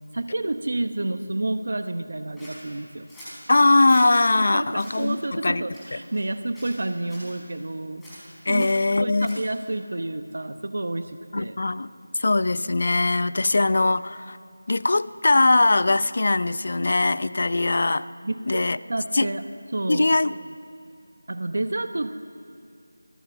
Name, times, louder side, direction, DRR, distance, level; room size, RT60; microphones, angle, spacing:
voice 1, 0.1-3.1 4.4-8.0 8.5-8.7 9.0-11.6 13.4-13.5 18.2-19.4 19.7-20.1 21.3-22.1, right 2 dB, 60° right, 9 dB, 1.0 m, -29 dB
Scissors, 2.4-4.3 4.7-5.1 5.7-6.3 6.5-7.3 8.0-9.6, equal, ahead, 5.7 m, -45 dB
voice 2, 3.5-5.6 8.5-9.4 11.3-11.9 12.2-14.4 14.7-18.1 18.5-18.8 19.1-19.3 19.9-20.3, left 2 dB, 45° left, 17 dB, 0.6 m, -21 dB
21.0 x 21.0 x 7.3 m, 2.4 s
figure-of-eight pair, 175°, 0 cm